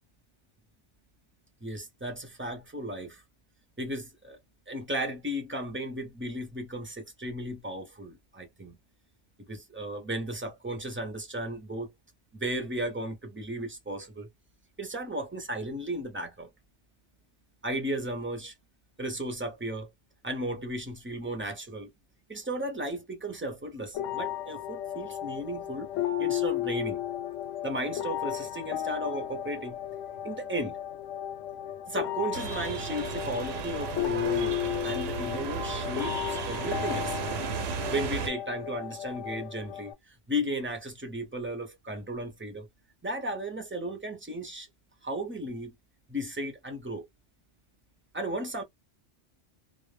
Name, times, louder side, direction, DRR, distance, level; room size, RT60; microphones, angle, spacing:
voice 1, 1.6-3.2 3.8-4.4 4.7-8.8 9.4-11.9 12.3-14.3 14.8-16.5 17.6-18.5 19.0-19.9 20.2-21.9 22.3-25.9 26.2-27.0 27.6-29.8 30.2-30.8 31.9-37.2 37.9-42.7 43.0-44.7 45.0-45.7 46.1-47.1 48.1-48.6, right 1 dB, 15° right, 0.4 m, -35 dB
sound 1, 23.9-39.9, left 12 dB, 90° left, 0.9 m, -34 dB
sound 2, 32.3-38.3, right 6 dB, 65° right, 0.8 m, -34 dB
2.1 x 2.0 x 3.1 m
omnidirectional pair, 1.2 m